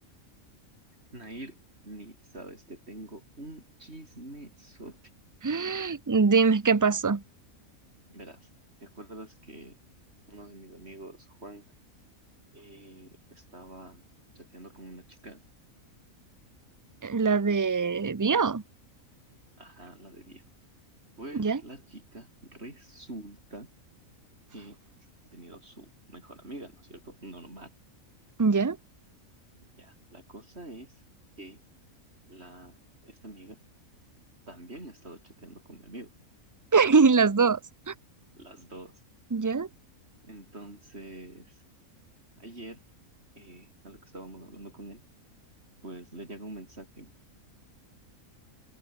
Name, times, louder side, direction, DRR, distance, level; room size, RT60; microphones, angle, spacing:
voice 1, 1.1-1.6 1.8-5.0 8.1-8.5 8.8-9.8 10.3-11.7 12.5-14.0 14.4-15.4 19.6-20.5 21.2-23.7 24.5-24.8 25.3-27.8 29.8-30.9 31.4-31.6 32.3-33.6 34.5-36.1 38.4-39.0 40.2-41.6 42.4-42.8 43.4-45.0 45.8-47.1, right 1 dB, 50° right, 7.5 m, -46 dB
voice 2, 5.4-7.2 17.0-18.6 21.3-21.6 28.4-28.8 36.7-37.6 37.9-38.0 39.3-39.7, right 5 dB, 20° right, 0.5 m, -23 dB
omnidirectional pair, 1.5 m